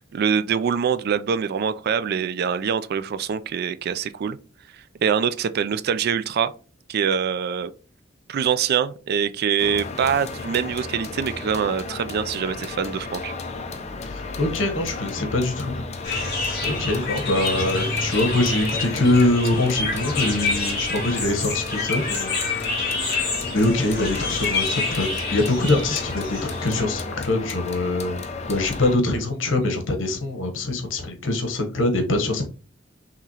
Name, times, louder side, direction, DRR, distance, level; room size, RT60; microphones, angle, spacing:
voice 1, 0.0-4.4 5.0-6.5 6.9-7.7 8.3-13.3, right 7 dB, 55° right, 0.3 m, -24 dB
sound 1, 9.6-29.0, left 3 dB, 35° left, 0.5 m, -34 dB
voice 2, 14.0-15.8 16.6-22.4 22.6-28.2 28.5-32.5, left 2 dB, 75° left, 1.1 m, -24 dB
sound 2, 16.0-26.8, left 3 dB, 60° left, 2.3 m, -28 dB
5.9 x 3.0 x 2.9 m
head